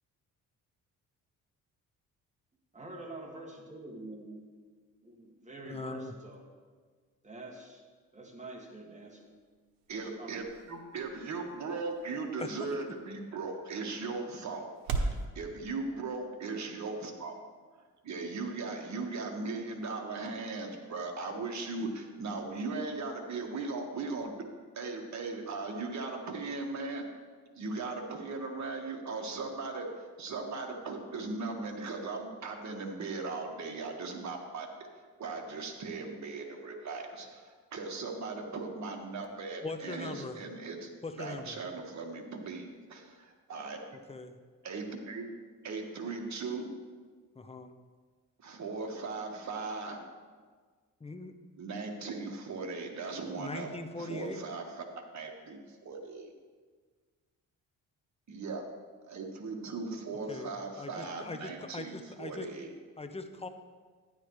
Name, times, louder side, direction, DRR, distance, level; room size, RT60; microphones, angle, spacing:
voice 1, 2.7-4.4 5.0-6.5 7.2-9.3 9.9-10.4, right 2 dB, 20° right, 0 dB, 2.1 m, -46 dB
voice 2, 5.7-6.1 12.4-12.5 39.6-40.4 41.0-41.6 44.1-44.3 47.4-47.8 51.0-51.3 53.4-54.4 60.3-62.5 63.0-63.5, left 3 dB, 20° left, 7 dB, 0.8 m, -41 dB
sound 1, 9.0-15.2, right 3 dB, 85° right, 0.9 m, -41 dB
voice 3, 9.9-17.3 18.0-24.3 24.7-27.0 27.5-34.7 35.2-40.9 41.2-44.0 44.6-45.2 45.6-46.7 48.4-50.0 51.6-53.7 54.0-54.8 55.1-56.3 58.3-58.6 59.0-62.7, right 3 dB, 55° right, 2 dB, 1.6 m, -38 dB
12.0 x 10.0 x 3.2 m, 1.5 s
cardioid pair, 95°, 34 cm